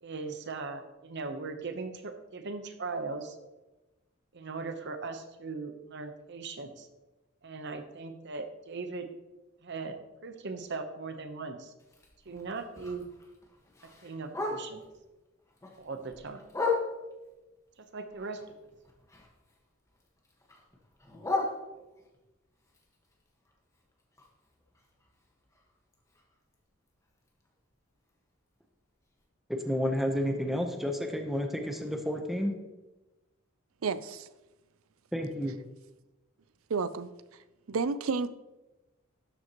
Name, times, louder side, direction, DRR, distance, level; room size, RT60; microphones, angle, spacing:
voice 1, 0.0-3.4 4.3-6.9 7.4-9.1 9.6-10.0 10.2-11.7 12.3-13.1 14.0-14.8 15.8-16.4 17.9-18.4, right 4 dB, 60° right, 7 dB, 0.9 m, -39 dB
Bark, 11.8-15.0 15.4-17.3 17.8-19.6 19.9-22.2 22.6-26.5 26.9-27.0 27.3-27.7 28.1-28.2 28.5-28.6 29.1-29.2, left 3 dB, 15° left, 1.4 m, -38 dB
voice 2, 29.6-32.5 35.1-35.5, equal, ahead, 3 dB, 0.9 m, -30 dB
voice 3, 33.8-34.3 36.7-37.1 37.7-38.3, right 4 dB, 85° right, 14 dB, 0.5 m, -30 dB
12.5 x 7.6 x 3.0 m, 1.1 s
head